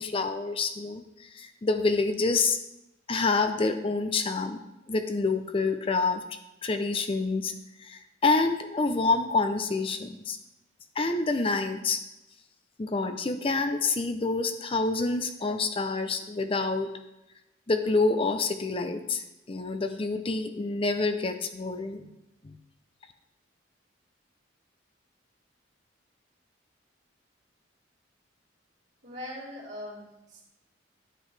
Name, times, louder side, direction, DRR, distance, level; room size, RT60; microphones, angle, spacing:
voice 1, 0.0-2.6 3.1-4.6 4.9-6.2 6.6-7.5 7.8-10.4 11.0-12.0 12.8-16.9 17.7-22.1 22.4-22.6, left 3 dB, 30° left, 8 dB, 0.5 m, -27 dB
voice 2, 29.0-30.4, left 1 dB, 60° right, -6 dB, 2.5 m, -41 dB
9.9 x 7.7 x 3.2 m, 0.92 s
head